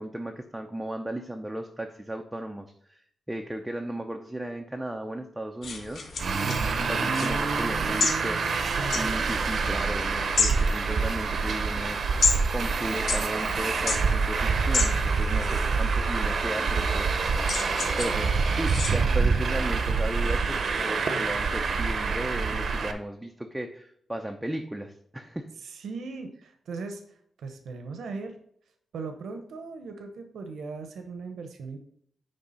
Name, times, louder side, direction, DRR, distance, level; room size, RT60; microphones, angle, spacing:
voice 1, 0.0-3.0 3.3-6.0 6.5-6.6 6.9-8.4 8.9-17.2 18.0-25.5, right 1 dB, 5° right, 3 dB, 0.5 m, -35 dB
sound 1, 5.6-18.9, left 4 dB, 55° left, 1.7 m, -33 dB
Traffic noise roadway noise, 6.2-22.9, right 4 dB, 50° right, 0.7 m, -26 dB
voice 2, 6.4-6.9 8.8-9.4 21.0-21.3 25.6-28.4 28.9-31.8, right 4 dB, 85° right, 6 dB, 0.9 m, -38 dB
9.9 x 3.5 x 5.5 m, 0.68 s
wide cardioid pair, 175°, 0 cm